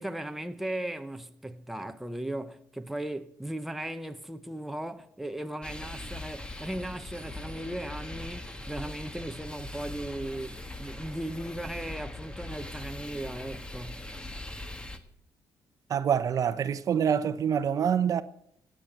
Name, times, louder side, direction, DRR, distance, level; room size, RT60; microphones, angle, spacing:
voice 1, 0.0-14.1, right 1 dB, 5° right, 0.9 m, -37 dB
sound 1, 5.6-15.0, left 1 dB, 15° left, 1.4 m, -41 dB
voice 2, 15.9-18.2, right 8 dB, 50° right, 0.8 m, -26 dB
16.5 x 9.0 x 7.9 m
cardioid pair, 115°, 7 cm